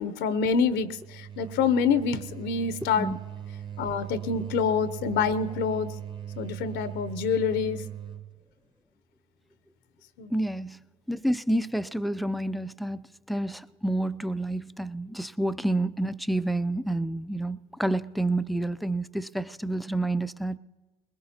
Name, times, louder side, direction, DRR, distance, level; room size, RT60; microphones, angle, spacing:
voice 1, 0.0-3.1 3.8-5.9 6.4-7.8 10.2-10.3, left 6 dB, 65° left, 14 dB, 0.7 m, -26 dB
sound 1, 0.6-8.3, right 10 dB, 25° right, 1.0 m, -40 dB
voice 2, 10.3-10.8 11.1-13.0 13.3-20.6, right 1 dB, ahead, 14 dB, 0.4 m, -29 dB
21.0 x 20.0 x 2.8 m, 1.3 s
hypercardioid pair, 70°, 20 cm